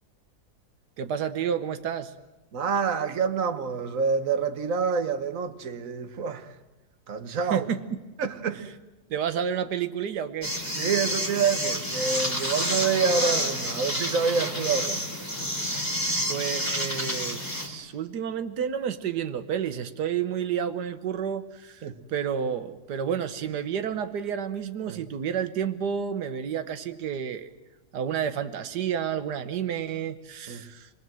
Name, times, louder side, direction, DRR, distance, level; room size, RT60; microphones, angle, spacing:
voice 1, 1.0-2.1 7.5-7.8 9.1-10.5 16.3-27.5 27.9-30.9, right 8 dB, 90° right, 1.6 m, -30 dB
voice 2, 2.5-6.5 7.1-7.7 8.2-8.6 10.8-15.1 21.8-22.0 24.9-25.0 30.5-30.7, right 5 dB, 55° right, 1.7 m, -27 dB
sound 1, 10.4-17.7, equal, 10° left, 4.0 m, -29 dB
27.5 x 21.5 x 7.7 m
omnidirectional pair, 1.7 m